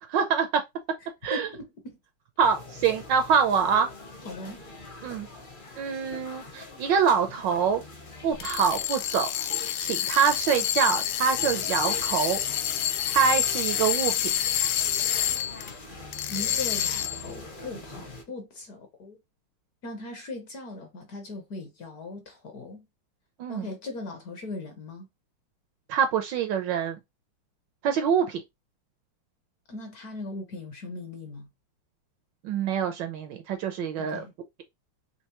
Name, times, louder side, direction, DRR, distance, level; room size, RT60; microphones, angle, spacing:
voice 1, 0.1-0.6 1.2-1.5 2.4-3.9 5.0-5.3 5.8-7.8 8.2-9.3 9.8-12.4 12.7-12.8 13.1-14.3 23.4-23.7 25.9-27.0 27.8-28.4 32.4-34.2, right 7 dB, 75° right, 1.1 m, -25 dB
voice 2, 1.0-2.0 4.2-4.6 16.3-19.2 19.8-22.9 23.5-25.1 29.7-31.5 34.0-34.3, left 3 dB, 55° left, 1.1 m, -39 dB
sound 1, 2.4-18.2, left 2 dB, 40° left, 0.7 m, -43 dB
sound 2, 8.3-15.7 16.1-17.3, left 11 dB, 85° left, 1.5 m, -28 dB
4.5 x 2.9 x 2.9 m
omnidirectional pair, 2.3 m